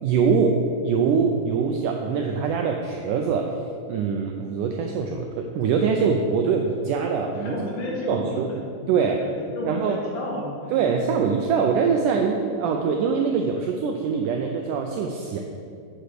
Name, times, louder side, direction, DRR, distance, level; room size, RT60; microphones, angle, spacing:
voice 1, 0.0-3.6 3.9-7.6 8.1-8.5 8.9-9.2 9.6-10.0 10.7-15.4, right 5 dB, 90° right, 3 dB, 1.8 m, -23 dB
voice 2, 7.4-9.0 9.2-10.8, left 1 dB, 80° left, -2 dB, 3.7 m, -32 dB
7.8 x 6.7 x 6.6 m, 2.3 s
omnidirectional pair, 4.4 m